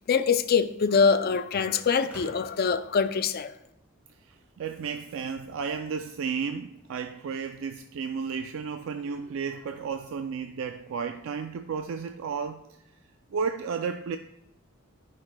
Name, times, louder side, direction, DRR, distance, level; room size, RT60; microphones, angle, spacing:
voice 1, 0.1-3.5, left 5 dB, 45° left, 0.4 m, -24 dB
Hood Impact, 2.0-3.9, equal, 5° right, 1.8 m, -49 dB
voice 2, 4.6-12.6 13.3-14.2, right 6 dB, 65° right, 0.3 m, -33 dB
11.5 x 5.7 x 2.2 m
head